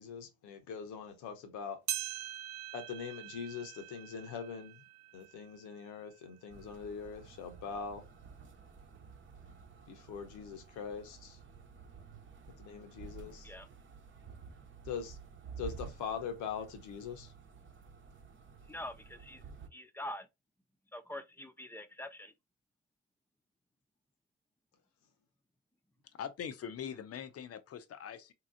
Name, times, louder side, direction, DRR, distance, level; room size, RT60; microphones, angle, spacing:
voice 1, 0.0-1.8 2.7-4.8 5.1-8.1 9.9-11.4 12.6-13.5 14.8-15.2 15.6-17.3, left 6 dB, 70° left, 1.1 m, -42 dB
sound 1, 1.9-6.5 7.0-7.1 7.9-8.0 9.0-9.1, right 12 dB, 65° right, 0.6 m, -43 dB
sound 2, 6.5-19.7, right 5 dB, 40° right, 1.0 m, -52 dB
voice 2, 18.7-19.4 19.7-20.3 20.9-22.3, left 1 dB, 5° left, 0.8 m, -44 dB
voice 3, 26.1-28.3, left 8 dB, 50° left, 0.8 m, -42 dB
3.9 x 2.9 x 2.5 m
hypercardioid pair, 50°, 31 cm